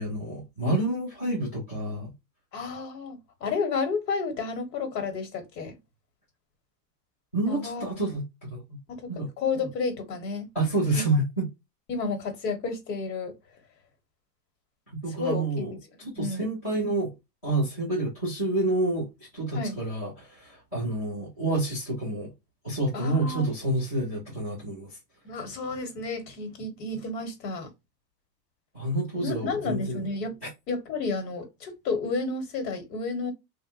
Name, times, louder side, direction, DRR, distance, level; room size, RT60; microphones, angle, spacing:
voice 1, 0.0-2.1 7.3-8.2 8.5-8.8 9.1-9.3 10.5-11.5 15.0-15.7 16.1-17.1 17.4-19.1 19.3-22.3 22.6-25.0 28.7-30.1, right 2 dB, 10° left, 0.3 m, -28 dB
voice 2, 2.5-5.8 7.5-7.8 8.9-10.5 10.9-11.2 11.9-13.3 15.2-15.6 16.0-16.5 19.5-19.7 22.9-23.5 25.2-27.7 29.1-30.4 30.7-33.3, left 4 dB, 85° left, 1.5 m, -31 dB
3.4 x 2.5 x 2.5 m
supercardioid pair, 170°, 49 cm